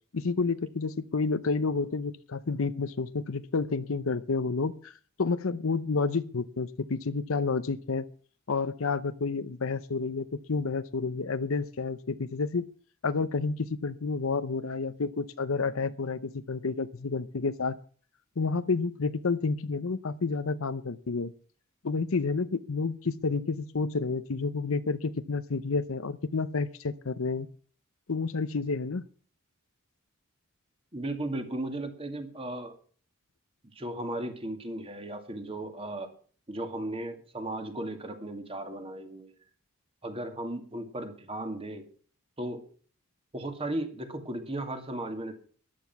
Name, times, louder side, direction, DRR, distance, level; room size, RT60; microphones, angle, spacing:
voice 1, 0.1-8.1 8.5-12.7 13.0-17.8 18.4-21.3 21.8-27.5 28.1-29.0, left 4 dB, 70° left, 12 dB, 0.7 m, -30 dB
voice 2, 30.9-32.8 33.8-36.1 36.5-39.3 40.0-41.8 42.4-42.6 43.3-45.3, right 1 dB, 25° right, 6 dB, 2.4 m, -36 dB
14.0 x 11.5 x 6.0 m, 0.43 s
head